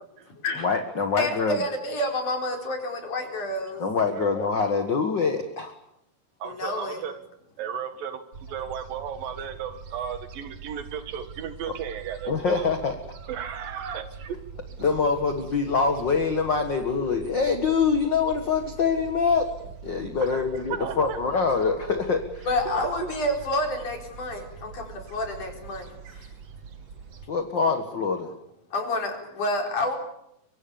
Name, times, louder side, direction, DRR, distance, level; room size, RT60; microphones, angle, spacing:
voice 1, 0.6-1.6 3.8-5.7 6.6-6.7 12.3-12.9 14.8-19.5 19.8-22.5 27.3-28.3, left 5 dB, 40° left, 6 dB, 1.9 m, -24 dB
voice 2, 1.2-3.8 6.4-7.0 22.5-26.3 28.7-30.0, left 1 dB, 60° left, 2 dB, 6.0 m, -29 dB
voice 3, 6.4-7.2 7.6-12.7 13.3-14.4 20.2-20.4 20.7-21.2 22.5-23.1, right 8 dB, 80° right, 9 dB, 3.4 m, -35 dB
Gull seagull, 8.3-27.3, right 6 dB, 50° right, 2.7 m, -43 dB
27.0 x 24.5 x 7.2 m, 0.80 s
omnidirectional pair, 4.0 m